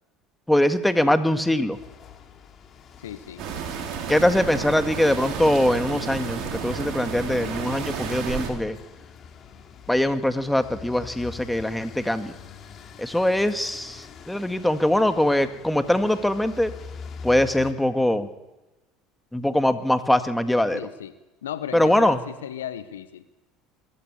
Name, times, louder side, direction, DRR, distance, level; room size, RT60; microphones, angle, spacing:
voice 1, 0.5-1.8 4.1-8.8 9.9-12.3 13.0-16.7 17.2-18.3 19.3-20.8 21.7-22.2, left 1 dB, 5° left, 9 dB, 1.9 m, -22 dB
sound 1, 1.7-17.7, left 6 dB, 40° left, 2.8 m, -45 dB
voice 2, 3.0-3.4 20.7-21.1 21.4-23.2, left 10 dB, 80° left, 13 dB, 1.1 m, -35 dB
sound 2, 3.4-8.5, right 7 dB, 55° right, 4.0 m, -31 dB
22.0 x 14.0 x 8.5 m, 1.0 s
hypercardioid pair, 70°, 0 cm